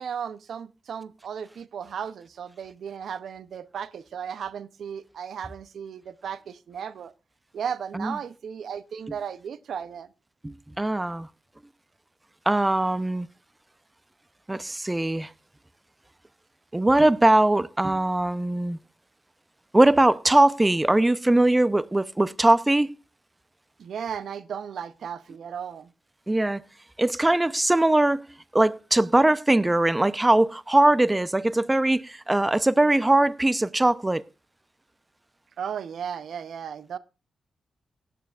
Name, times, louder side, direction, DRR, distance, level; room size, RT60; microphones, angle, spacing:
voice 1, 0.0-7.1 7.5-10.1 23.8-25.9 35.6-37.0, right 7 dB, 80° right, 0.6 m, -35 dB
voice 2, 10.4-11.3 12.5-13.3 14.5-15.3 16.7-18.8 19.7-22.9 26.3-26.6 27.0-28.2 28.5-34.2, right 1 dB, 15° right, 0.6 m, -21 dB
17.5 x 9.2 x 2.4 m
cardioid pair, 65°, 0 cm